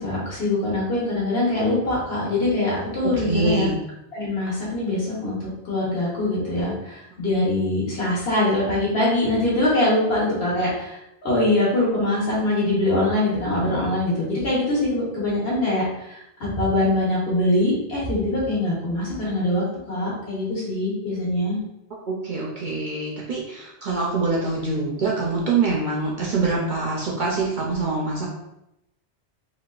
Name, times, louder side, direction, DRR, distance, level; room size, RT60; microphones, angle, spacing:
voice 1, 0.0-3.7 4.1-16.2 16.6-21.6, left 1 dB, 65° left, -5 dB, 1.4 m, -23 dB
voice 2, 3.2-3.7 22.1-28.3, right 3 dB, 55° right, -3 dB, 0.6 m, -24 dB
4.0 x 2.3 x 2.3 m, 0.87 s
omnidirectional pair, 1.2 m